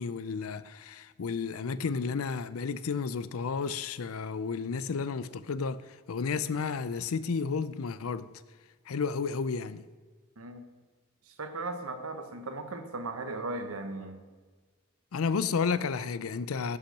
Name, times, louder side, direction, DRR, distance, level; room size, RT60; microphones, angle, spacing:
voice 1, 0.0-8.3 8.9-9.8 15.1-16.8, left 5 dB, 85° left, 0.5 m, -32 dB
voice 2, 11.3-14.2, right 2 dB, 85° right, 1.1 m, -37 dB
11.5 x 5.8 x 5.9 m
head